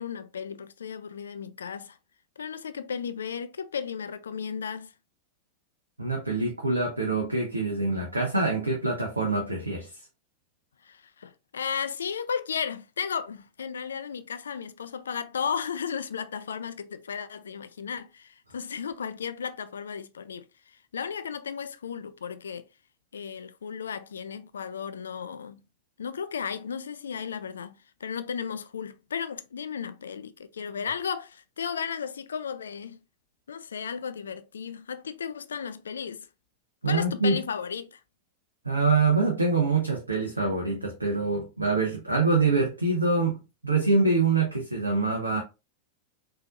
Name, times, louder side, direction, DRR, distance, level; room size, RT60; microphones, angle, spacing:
voice 1, 0.0-2.0 2.4-4.9 10.8-22.7 23.1-25.6 26.0-33.0 33.5-36.3 36.9-38.0, left 7 dB, 70° left, 0.3 m, -34 dB
voice 2, 6.0-9.9 36.8-37.4 38.6-45.4, right 3 dB, 80° right, 0.7 m, -25 dB
4.1 x 2.8 x 2.4 m
figure-of-eight pair, 90°, 0 cm